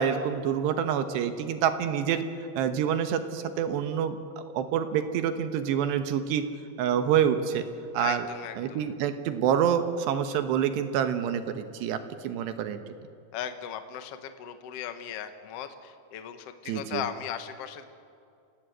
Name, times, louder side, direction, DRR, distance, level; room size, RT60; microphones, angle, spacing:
voice 1, 0.0-2.2 2.6-4.2 4.5-6.4 6.8-7.7 7.9-8.3 8.6-12.0 12.2-12.8 16.7-17.0, right 8 dB, 80° right, 9 dB, 3.3 m, -27 dB
voice 2, 8.0-8.8 13.3-17.8, left 9 dB, 75° left, 8 dB, 1.4 m, -37 dB
28.5 x 18.0 x 8.0 m, 2.4 s
omnidirectional pair, 4.9 m